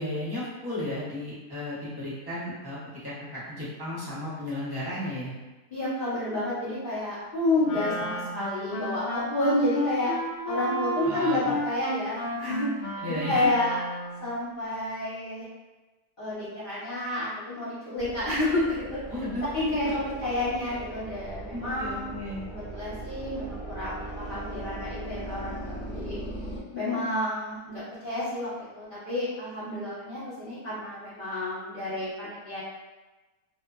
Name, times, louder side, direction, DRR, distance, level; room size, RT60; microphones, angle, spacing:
voice 1, 0.0-5.3 11.0-11.6 13.0-13.4 19.1-19.5 21.5-22.4, left 1 dB, 25° right, -11 dB, 0.5 m, -34 dB
voice 2, 5.7-10.1 10.4-12.7 13.1-13.7 14.2-15.5 16.2-19.0 19.4-22.1 22.5-26.2 26.7-32.6, left 1 dB, 35° left, -14 dB, 1.1 m, -30 dB
Wind instrument woodwind instrument, 7.6-14.3, equal, 80° left, 0.5 m, -33 dB
sound 1, 18.0-26.6, right 1 dB, 65° left, 1.0 m, -39 dB
2.8 x 2.1 x 2.4 m, 1.2 s
omnidirectional pair, 1.7 m